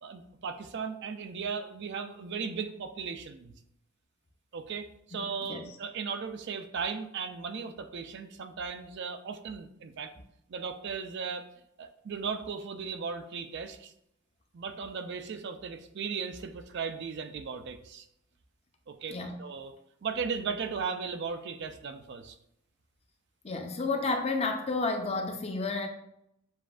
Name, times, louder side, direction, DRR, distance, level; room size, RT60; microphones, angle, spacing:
voice 1, 0.0-3.5 4.5-10.1 10.5-11.5 11.8-13.9 14.5-18.1 18.9-19.7 20.0-22.4, right 5 dB, 60° right, 8 dB, 0.4 m, -37 dB
voice 2, 23.4-25.9, left 3 dB, 30° left, 4 dB, 0.5 m, -31 dB
7.0 x 2.5 x 2.4 m, 0.76 s
head